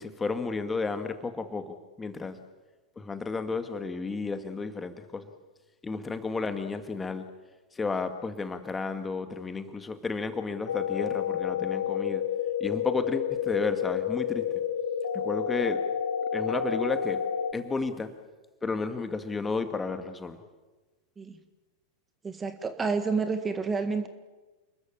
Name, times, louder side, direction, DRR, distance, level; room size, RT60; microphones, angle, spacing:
voice 1, 0.0-2.4 3.0-5.3 5.8-7.3 7.7-12.2 12.6-14.4 15.1-15.8 16.3-17.2 17.5-18.1 18.6-20.4, left 4 dB, 15° left, 8 dB, 2.1 m, -32 dB
sound 1, 10.7-17.5, left 8 dB, 65° left, 2.2 m, -30 dB
voice 2, 22.2-24.1, right 4 dB, 15° right, 9 dB, 1.8 m, -29 dB
29.5 x 21.5 x 7.4 m, 1.2 s
figure-of-eight pair, 90°, 0 cm